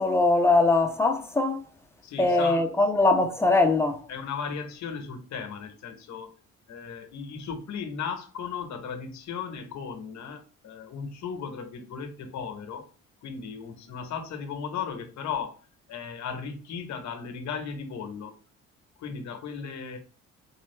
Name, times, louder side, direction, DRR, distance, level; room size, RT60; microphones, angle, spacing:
voice 1, 0.0-1.6 2.2-4.0, left 2 dB, 10° left, 0.8 m, -22 dB
voice 2, 2.0-2.6 4.1-6.3 6.7-12.9 13.2-15.6 15.9-18.3 19.0-20.0, left 6 dB, 70° left, 1.0 m, -36 dB
4.4 x 2.4 x 3.2 m
cardioid pair, 90°, 30 cm